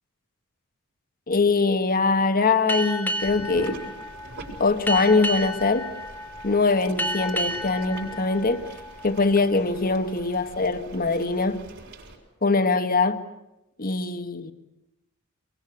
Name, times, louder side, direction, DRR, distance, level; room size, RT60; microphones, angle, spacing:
voice 1, 1.3-3.8 4.6-5.9 6.4-8.6 9.0-11.6 12.4-13.2 13.8-14.5, left 3 dB, 45° left, 1.5 m, -22 dB
Boat Water vehicle, 2.7-9.8, equal, 10° left, 1.9 m, -32 dB
sound 1, 3.2-12.2, right 2 dB, 60° right, 6.3 m, -43 dB
25.0 x 23.5 x 8.5 m
head